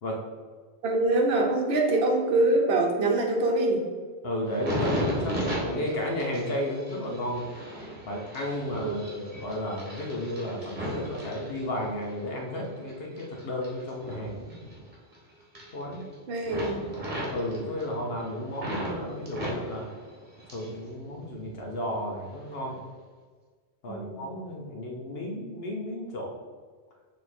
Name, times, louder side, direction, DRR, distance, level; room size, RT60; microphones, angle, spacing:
voice 1, 0.8-3.8 8.8-9.2 16.3-16.8 23.9-24.2, right 2 dB, 65° right, 1 dB, 1.0 m, -24 dB
voice 2, 4.2-7.5 8.1-14.6 15.7-16.1 17.3-19.9 20.5-22.8 23.8-26.3, left 1 dB, 65° left, -1 dB, 1.1 m, -33 dB
sound 1, 4.4-12.1 12.6-15.2 15.4-16.1 16.4-18.9 19.3-20.8 21.1-21.8 22.4-22.6, equal, 45° right, 1.7 m, -35 dB
6.8 x 3.2 x 4.3 m, 1.5 s
omnidirectional pair, 1.1 m